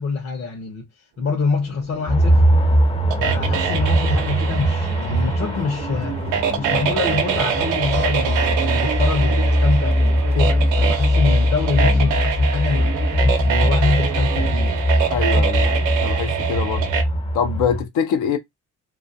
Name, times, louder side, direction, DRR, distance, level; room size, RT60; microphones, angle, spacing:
voice 1, 0.0-2.4 3.2-6.2 6.6-13.0 13.5-14.9, left 4 dB, 50° left, 0.7 m, -26 dB
sound 1, 1.2-15.3, right 7 dB, 50° right, 0.5 m, -37 dB
sound 2, 2.1-17.8, equal, 20° left, 0.5 m, -20 dB
sound 3, 3.1-17.0, right 8 dB, 90° right, 0.6 m, -25 dB
voice 2, 15.1-16.9 17.3-18.4, left 7 dB, 85° left, 0.5 m, -24 dB
2.3 x 2.2 x 2.6 m
cardioid pair, 90°, 30 cm